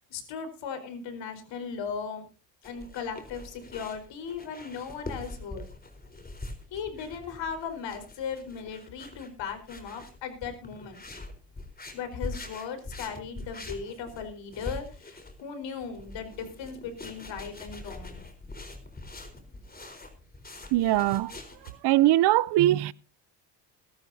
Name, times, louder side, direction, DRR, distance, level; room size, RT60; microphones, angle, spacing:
voice 1, 0.1-2.2 2.6-5.6 6.7-11.0 11.9-18.2, left 6 dB, 65° left, 4.6 m, -37 dB
sound 1, 2.6-21.7, left 2 dB, 20° left, 4.2 m, -43 dB
voice 2, 20.7-21.3 21.8-22.9, right 15 dB, 55° right, 0.7 m, -21 dB
21.0 x 12.0 x 2.8 m
supercardioid pair, 90°, 47 cm